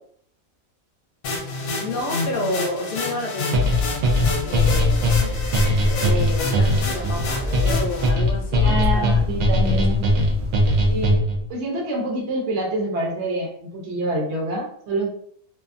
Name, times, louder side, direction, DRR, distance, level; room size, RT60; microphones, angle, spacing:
sound 1, 1.2-8.1, left 2 dB, 85° left, 1.0 m, -29 dB
voice 1, 1.8-3.8 4.4-5.1 5.8-9.9, left 2 dB, 60° left, 1 dB, 0.9 m, -30 dB
sound 2, 3.5-11.5, left 1 dB, 85° right, 1.1 m, -20 dB
sound 3, 3.8-11.1, equal, 25° right, 0.3 m, -33 dB
voice 2, 8.6-10.1 10.9-11.2 11.5-15.1, right 2 dB, 60° right, -1 dB, 0.9 m, -26 dB
2.6 x 2.3 x 2.5 m, 0.64 s
omnidirectional pair, 1.5 m